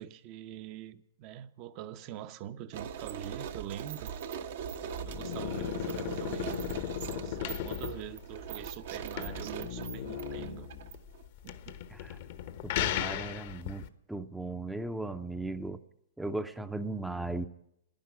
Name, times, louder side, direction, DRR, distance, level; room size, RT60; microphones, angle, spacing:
voice 1, 0.0-4.1 4.8-6.7 7.1-10.7 11.4-11.8, right 11 dB, 40° right, 0.8 m, -44 dB
sound 1, 2.7-11.2, right 8 dB, 65° right, 1.1 m, -41 dB
sound 2, 4.6-13.9, left 10 dB, 55° left, 0.9 m, -37 dB
voice 2, 12.6-15.8 16.2-17.5, right 2 dB, 5° right, 0.6 m, -37 dB
11.0 x 10.5 x 9.5 m
hypercardioid pair, 125°, 0 cm